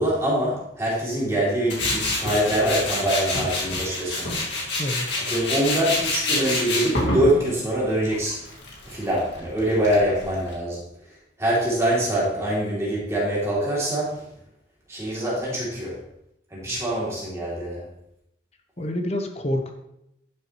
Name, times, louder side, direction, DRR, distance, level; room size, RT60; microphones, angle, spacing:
voice 1, 0.0-4.3 5.3-8.4 8.8-10.8 11.4-14.2 14.9-16.0 16.5-17.9, right 1 dB, 15° right, -6 dB, 2.8 m, -24 dB
Tools, 1.7-10.5, left 2 dB, 70° left, 2.0 m, -28 dB
voice 2, 4.8-5.3 18.8-19.7, left 1 dB, 35° left, 5 dB, 1.0 m, -28 dB
11.0 x 6.7 x 3.1 m, 0.80 s
head